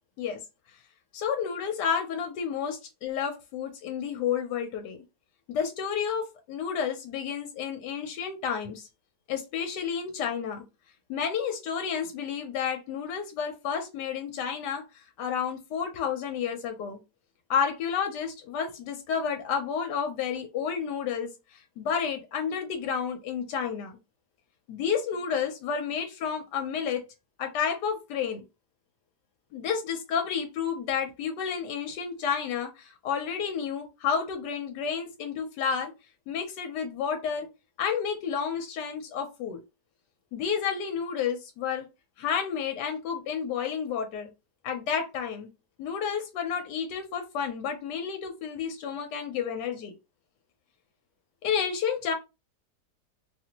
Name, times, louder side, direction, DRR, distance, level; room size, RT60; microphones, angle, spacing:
voice 1, 1.1-2.8 3.0-5.0 5.5-8.9 9.3-10.6 11.1-17.0 17.5-21.3 21.8-24.0 24.7-27.0 27.4-28.4 29.5-35.9 36.3-37.5 37.8-39.6 40.3-41.9 42.2-44.3 44.6-45.5 45.8-49.9 51.4-52.1, left 7 dB, 75° left, 5 dB, 1.2 m, -30 dB
2.9 x 2.5 x 2.8 m, 0.25 s
omnidirectional pair, 1.9 m